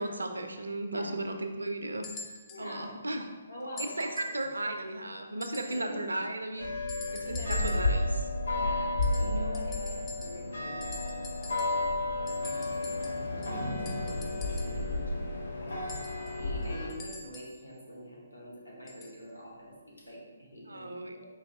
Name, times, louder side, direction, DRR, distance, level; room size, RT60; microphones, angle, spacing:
voice 1, 0.0-2.1 2.6-3.2 4.0-6.7 7.1-8.0 20.7-21.1, right 1 dB, 70° right, 5 dB, 0.5 m, -35 dB
sound 1, 2.0-2.7 3.8-4.4 5.4-5.9 6.9-8.0 9.0-10.5 10.8-11.9 12.3-14.9 15.9-17.6 18.9-19.2 20.1-20.2, left 2 dB, 15° left, 0.4 m, -45 dB
voice 2, 2.5-3.0 3.5-4.3 5.6-6.1 7.2-7.9 8.6-15.3 15.6-15.8 16.4-21.2, equal, 85° left, -4 dB, 1.4 m, -45 dB
sound 2, 6.6-16.9, left 2 dB, 65° left, 1.0 m, -32 dB
4.6 x 2.6 x 3.4 m, 1.3 s
figure-of-eight pair, 135°, 0 cm